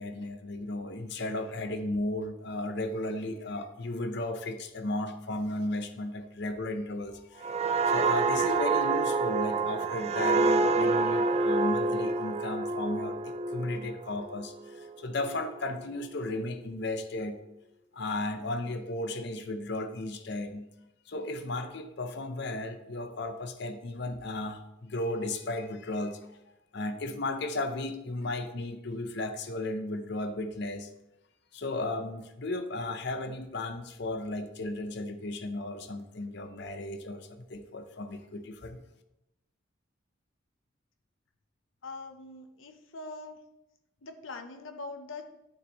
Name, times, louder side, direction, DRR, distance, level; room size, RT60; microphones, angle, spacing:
voice 1, 0.0-7.5 7.9-17.4 17.9-20.7 21.1-26.4 26.7-30.9 31.5-38.8, left 2 dB, 60° left, 8 dB, 0.8 m, -35 dB
sound 1, 7.4-14.9 15.3-15.5, right 3 dB, 35° right, 0.4 m, -27 dB
voice 2, 41.8-43.4 44.0-45.3, left 3 dB, 90° left, 6 dB, 0.8 m, -42 dB
9.6 x 6.6 x 3.1 m, 0.90 s
head